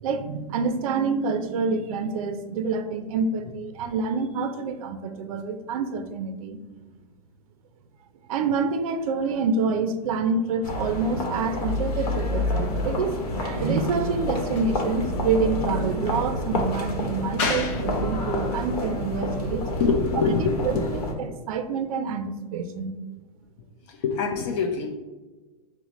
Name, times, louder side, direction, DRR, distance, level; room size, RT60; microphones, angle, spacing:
voice 1, 0.0-6.6 8.3-19.7 20.6-23.0, right 4 dB, 65° right, 9 dB, 0.4 m, -27 dB
sound 1, 10.6-21.1, left 1 dB, 80° left, 0.9 m, -28 dB
voice 2, 17.4-18.1 18.9-19.1 19.8-20.9 23.9-25.0, left 4 dB, 50° left, 2 dB, 0.6 m, -25 dB
5.5 x 2.1 x 3.0 m, 1.2 s
hypercardioid pair, 125°, 20 cm